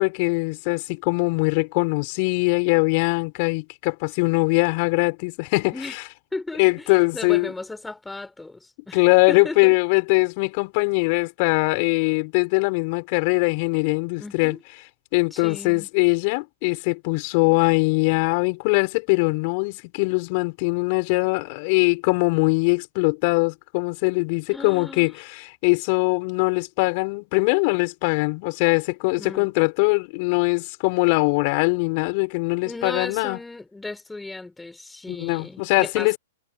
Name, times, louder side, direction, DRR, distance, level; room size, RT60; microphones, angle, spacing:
voice 1, 0.0-6.0 6.6-7.5 8.9-14.6 15.1-33.4 35.1-36.2, left 31 dB, 45° left, 5.5 m, -22 dB
voice 2, 6.3-9.0 9.3-9.8 14.2-14.6 15.3-15.9 24.5-25.1 29.2-29.5 32.6-36.2, left 2 dB, 5° left, 4.3 m, -35 dB
hypercardioid pair, 110°, 0 cm